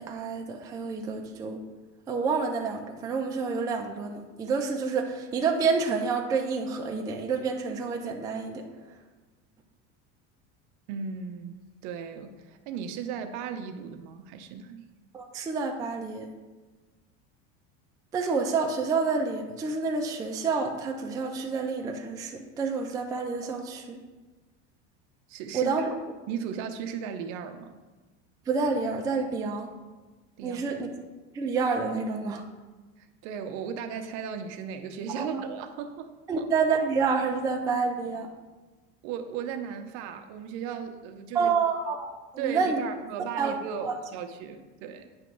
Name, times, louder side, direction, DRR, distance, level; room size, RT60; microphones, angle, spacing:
voice 1, 0.0-1.6 2.1-8.6 15.1-16.3 18.1-24.0 25.5-25.9 28.5-29.7 30.4-30.9 31.3-32.4 35.1-35.4 36.3-38.3 41.3-42.8 43.4-43.5 43.8-43.9, right 4 dB, 10° right, 1 dB, 0.3 m, -28 dB
voice 2, 10.9-14.9 25.3-25.7 26.3-27.7 30.4-30.7 33.0-36.4 39.0-41.5 42.4-45.1, right 7 dB, 55° right, 7 dB, 0.7 m, -36 dB
8.8 x 3.1 x 5.8 m, 1.2 s
cardioid pair, 150°, 35 cm